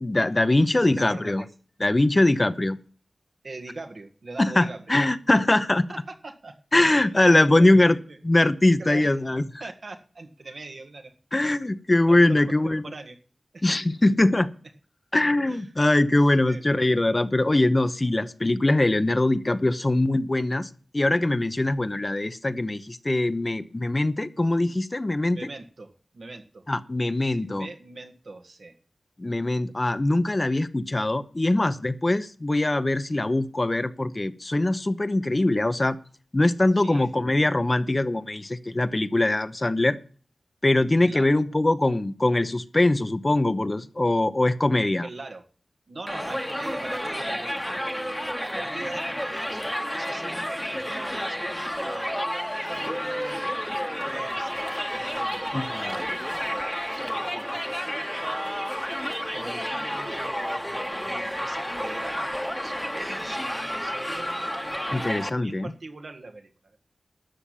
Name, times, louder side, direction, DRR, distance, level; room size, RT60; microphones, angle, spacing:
voice 1, 0.0-1.4 1.8-2.8 4.4-5.9 6.7-8.0 8.2-9.4 11.3-12.8 13.6-14.5 15.1-25.4 26.7-27.7 29.2-36.0 36.3-40.0 40.6-45.1 55.5-55.6 64.9-65.7, left 2 dB, 35° left, 11 dB, 0.9 m, -22 dB
voice 2, 0.6-1.5 3.4-4.9 5.9-8.2 8.8-9.1 9.6-11.1 11.5-11.8 12.1-13.2 13.5-13.7 15.4-15.7 16.2-16.6 25.3-26.6 27.2-28.8 36.7-37.1 41.0-41.3 45.0-45.4 45.9-53.8 54.0-58.8 59.3-66.8, right 3 dB, 70° right, 6 dB, 1.6 m, -42 dB
Crowd, 46.1-65.3, equal, 5° left, 1.2 m, -31 dB
13.0 x 5.9 x 8.5 m, 0.42 s
cardioid pair, 50°, 0 cm